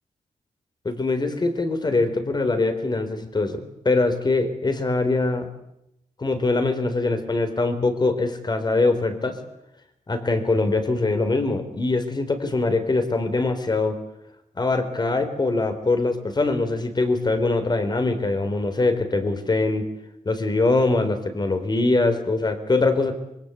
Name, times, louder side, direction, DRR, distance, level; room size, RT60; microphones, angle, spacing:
voice 1, 0.8-5.5 6.2-9.4 10.1-14.0 14.6-19.9 20.2-23.1, left 3 dB, 35° left, 9 dB, 4.1 m, -23 dB
26.5 x 23.0 x 8.3 m, 0.82 s
wide cardioid pair, 110°, 13 cm